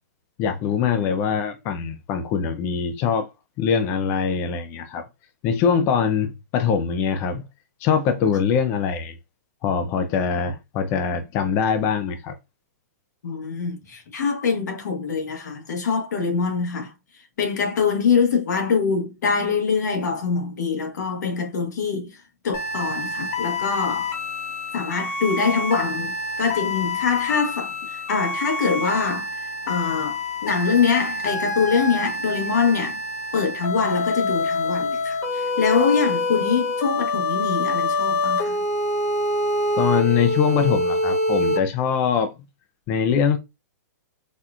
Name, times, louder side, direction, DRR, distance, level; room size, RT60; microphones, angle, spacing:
voice 1, 0.4-3.3 3.6-5.0 5.4-7.4 7.8-9.1 9.6-12.3 39.8-42.3 42.9-43.4, left 7 dB, 25° left, 0.4 m, -23 dB
voice 2, 13.2-24.1 24.7-33.0 33.3-38.6, left 5 dB, 80° left, 1.2 m, -24 dB
sound 1, 22.5-41.6, left 2 dB, 50° left, 0.8 m, -26 dB
4.2 x 2.3 x 2.4 m
hypercardioid pair, 150°, 9 cm